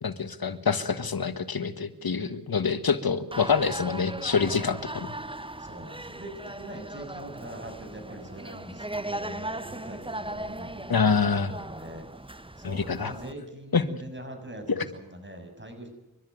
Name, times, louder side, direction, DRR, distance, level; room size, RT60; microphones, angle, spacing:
voice 1, 0.0-5.1 10.9-11.5 12.6-13.1 13.7-13.8 14.7-14.9, left 5 dB, 85° left, 12 dB, 1.6 m, -26 dB
voice 2, 1.9-2.2 5.6-12.0 12.6-15.9, right 1 dB, 30° right, 5 dB, 6.9 m, -43 dB
sound 1, 3.3-13.3, right 1 dB, 15° right, 1.0 m, -38 dB
28.5 x 13.0 x 9.4 m, 1.0 s
wide cardioid pair, 70°, 35 cm